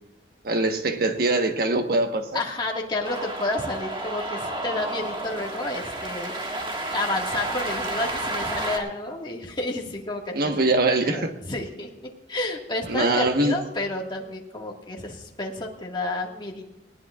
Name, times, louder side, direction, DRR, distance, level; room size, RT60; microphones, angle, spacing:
voice 1, 0.4-2.4 10.3-11.3 12.9-13.5, right 2 dB, 60° right, 5 dB, 1.3 m, -23 dB
voice 2, 2.3-10.6 11.0-16.6, left 2 dB, 25° left, -1 dB, 1.9 m, -31 dB
Cheering, 3.0-8.8, right 2 dB, 30° right, 1.8 m, -31 dB
19.5 x 16.0 x 2.5 m, 1.0 s
head